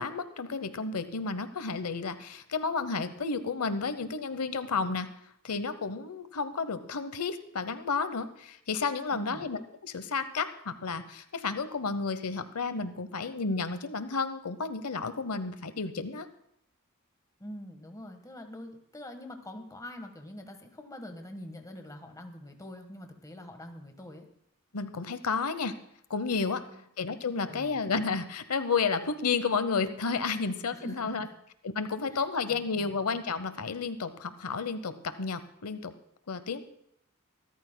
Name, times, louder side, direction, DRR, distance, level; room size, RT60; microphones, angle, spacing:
voice 1, 0.0-5.1 5.4-16.3 24.7-25.8 26.1-26.6 27.0-31.3 31.6-35.9 36.3-36.6, left 4 dB, 90° left, 11 dB, 0.8 m, -32 dB
voice 2, 9.1-9.5 17.4-24.3 26.6-26.8 27.5-27.8 30.7-31.3 32.1-32.9, left 1 dB, 15° left, 5 dB, 1.4 m, -44 dB
25.0 x 13.5 x 2.2 m, 0.73 s
head